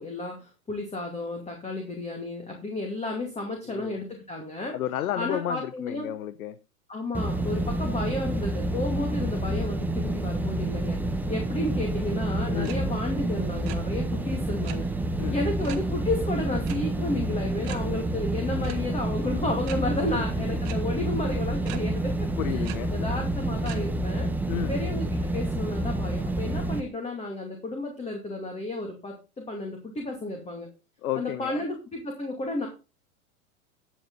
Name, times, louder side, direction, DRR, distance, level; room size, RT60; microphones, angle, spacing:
voice 1, 0.0-4.7 5.1-6.1 6.9-14.9 15.3-24.3 24.7-25.1 25.3-30.7 31.2-32.7, left 2 dB, 15° left, 2 dB, 2.3 m, -32 dB
voice 2, 3.6-4.0 4.7-6.6 12.5-12.8 15.2-15.5 22.4-22.9 24.5-24.8 31.0-31.6, left 12 dB, 75° left, 15 dB, 0.8 m, -32 dB
sound 1, 7.1-26.8, right 1 dB, 5° right, 1.0 m, -28 dB
sound 2, 12.6-12.8 13.0-13.2 13.5-13.8 14.6-14.8 15.6-15.9 16.6-16.8 17.1-17.2 17.6-17.8 18.6-18.8 19.6-19.8 20.6-20.7 21.6-21.8 22.6-22.8 23.6-23.8, right 14 dB, 45° right, 1.7 m, -40 dB
11.5 x 7.6 x 3.9 m, 0.30 s
hypercardioid pair, 100°, 44 cm